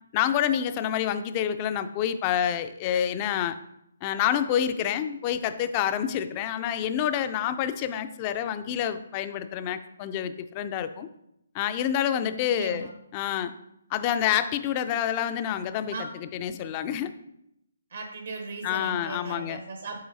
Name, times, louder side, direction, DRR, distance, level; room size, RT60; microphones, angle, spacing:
voice 1, 0.1-3.6 4.0-11.1 11.5-13.5 13.9-15.9 16.3-17.1 18.6-19.6, left 10 dB, 25° left, 11 dB, 0.4 m, -28 dB
voice 2, 12.5-12.9 15.9-16.0 17.9-20.0, right 3 dB, 65° right, 4 dB, 1.0 m, -37 dB
7.7 x 4.8 x 2.7 m, 0.81 s
hypercardioid pair, 150°, 0 cm